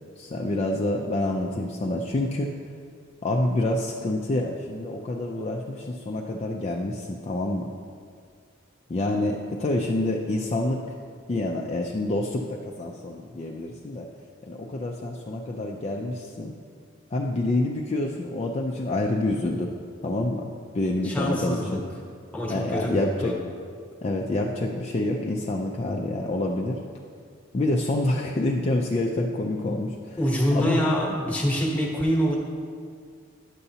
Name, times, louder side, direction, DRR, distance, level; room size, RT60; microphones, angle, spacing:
voice 1, 0.2-2.5 3.2-7.7 8.9-10.8 11.3-14.1 14.4-16.5 17.1-19.7 20.0-20.5 20.7-21.8 22.5-23.3 24.0-26.8 27.5-30.2 30.5-30.8, left 2 dB, 30° left, 0 dB, 0.4 m, -27 dB
voice 2, 21.0-21.8 22.3-23.3 30.2-32.4, equal, 5° left, -2 dB, 1.0 m, -25 dB
9.8 x 6.7 x 2.8 m, 2.1 s
head